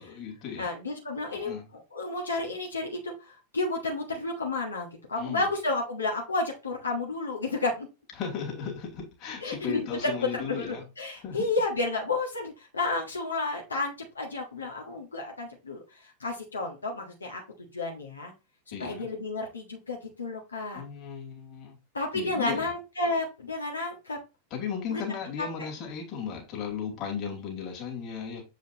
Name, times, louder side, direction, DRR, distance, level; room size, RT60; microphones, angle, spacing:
voice 1, 0.0-0.7 1.3-1.6 5.2-5.4 8.2-10.8 11.2-11.5 18.7-19.1 20.7-21.8 22.1-22.7 24.5-28.4, left 7 dB, 35° left, 2.7 m, -35 dB
voice 2, 0.6-7.9 9.4-17.4 17.7-18.3 18.7-20.8 21.9-24.2 24.9-25.0 25.4-25.5, left 2 dB, 75° left, 1.6 m, -31 dB
7.3 x 5.0 x 2.9 m
figure-of-eight pair, 90°, 0 cm